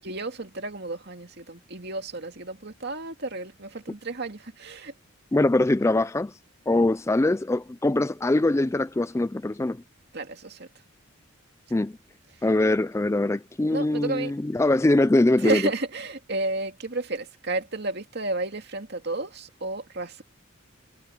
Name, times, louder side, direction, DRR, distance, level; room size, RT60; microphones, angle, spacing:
voice 1, 0.0-4.9 10.1-10.7 13.7-14.3 15.4-20.2, right 2 dB, 55° right, 2.4 m, -32 dB
voice 2, 5.3-6.3 6.7-9.8 11.7-12.0 12.4-15.6, left 2 dB, 15° left, 0.3 m, -22 dB
head